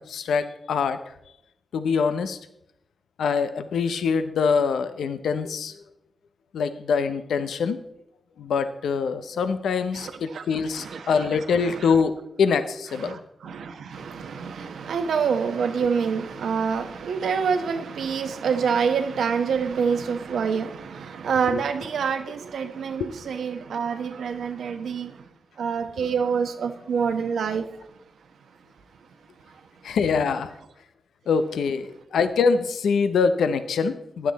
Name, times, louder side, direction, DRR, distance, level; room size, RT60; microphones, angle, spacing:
voice 1, 0.1-1.0 1.7-2.4 3.2-5.7 6.5-7.8 8.4-12.1 12.4-13.2 21.5-21.6 29.8-30.5 31.3-34.3, left 5 dB, 90° left, 0.7 m, -24 dB
voice 2, 9.9-10.4 10.7-11.3 11.8-11.9 13.0-25.1 25.6-27.6, right 6 dB, 85° right, 1.1 m, -27 dB
15.0 x 10.5 x 4.1 m
cardioid pair, 50°, 0 cm